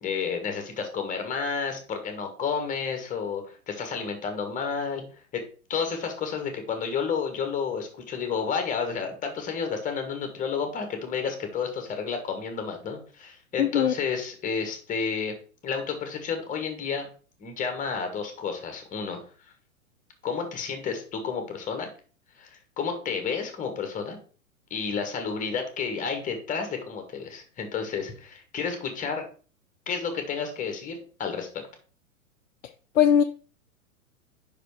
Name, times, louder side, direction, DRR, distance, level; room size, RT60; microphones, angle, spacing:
voice 1, 0.0-5.0 5.3-5.4 5.7-15.3 15.6-17.1 17.4-19.2 20.2-21.9 22.4-24.2 24.7-29.2 29.9-31.6, left 6 dB, 20° left, 1.5 m, -31 dB
voice 2, 13.6-13.9 33.0-33.2, left 9 dB, 65° left, 0.6 m, -19 dB
5.3 x 5.0 x 4.8 m
figure-of-eight pair, 105°, 42 cm